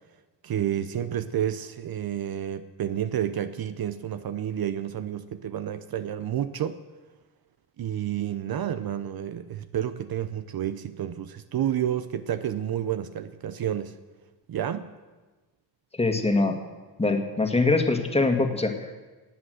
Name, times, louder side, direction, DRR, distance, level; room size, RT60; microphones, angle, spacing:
voice 1, 0.4-6.8 7.8-13.9 14.5-14.9, right 10 dB, 55° right, 12 dB, 0.8 m, -30 dB
voice 2, 15.9-16.6 17.0-18.9, left 3 dB, 15° left, 5 dB, 1.8 m, -23 dB
18.0 x 8.6 x 7.8 m, 1.3 s
cardioid pair, 110°, 44 cm